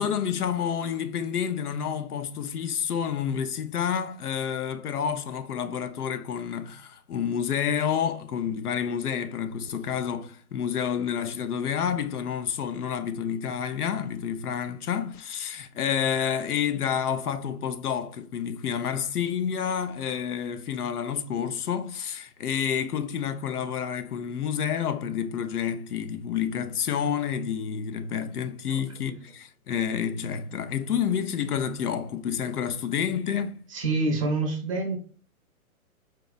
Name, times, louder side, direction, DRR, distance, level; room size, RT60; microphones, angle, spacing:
voice 1, 0.0-33.6, left 8 dB, 90° left, 0.6 m, -29 dB
voice 2, 33.7-35.0, right 3 dB, 25° right, 0.5 m, -26 dB
4.3 x 2.2 x 2.3 m
hypercardioid pair, 140°, 44 cm